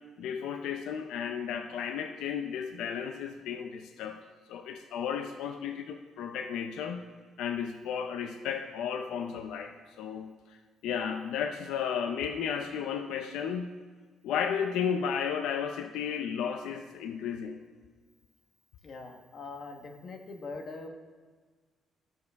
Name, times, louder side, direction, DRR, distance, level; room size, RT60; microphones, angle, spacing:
voice 1, 0.2-4.2 4.5-7.0 7.4-10.3 10.8-13.7 14.2-17.6, left 7 dB, 90° left, 7 dB, 0.5 m, -33 dB
voice 2, 18.8-20.9, left 3 dB, 40° left, 4 dB, 1.1 m, -42 dB
13.0 x 7.1 x 3.5 m, 1.5 s
cardioid pair, 150°, 0 cm